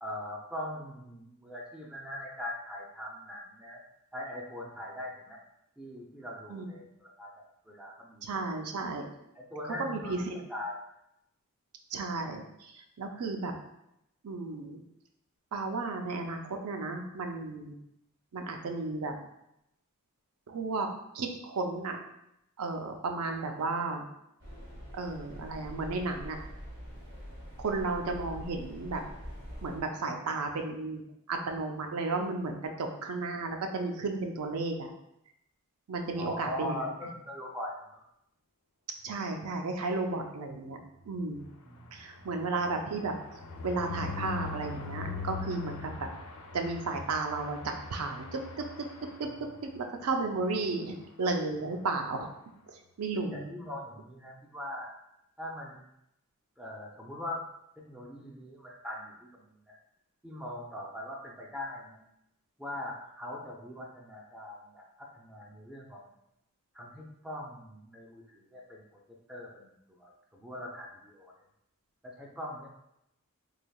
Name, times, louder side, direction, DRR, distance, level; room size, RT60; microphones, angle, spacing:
voice 1, 0.0-3.8 4.1-5.4 5.8-8.7 9.4-10.1 10.5-10.8 36.2-38.0 41.6-42.3 49.2-49.4 53.1-54.9 55.4-55.8 56.6-57.4 57.8-59.8 60.2-62.0 62.6-66.0 66.7-68.8 69.3-69.7 70.0-71.3 72.0-72.7, left 1 dB, 5° right, -3 dB, 0.3 m, -41 dB
voice 2, 8.2-9.0 9.8-10.4 11.9-12.7 13.0-13.5 14.2-14.8 15.5-17.7 18.3-19.1 20.5-20.9 21.1-22.0 22.6-24.0 24.9-26.4 27.6-29.0 29.6-31.0 31.3-34.9 35.9-36.9 39.0-40.8 41.1-41.5 41.9-43.1 43.6-46.1 46.5-48.9 49.2-52.3 53.0-53.5, right 3 dB, 85° right, 4 dB, 0.5 m, -33 dB
sound 1, 24.4-29.8, equal, 50° right, 1.4 m, -44 dB
sound 2, 41.0-49.8 50.2-50.4 50.7-50.8 51.0-51.3, left 4 dB, 75° left, 0.5 m, -42 dB
3.4 x 3.3 x 2.3 m, 0.82 s
head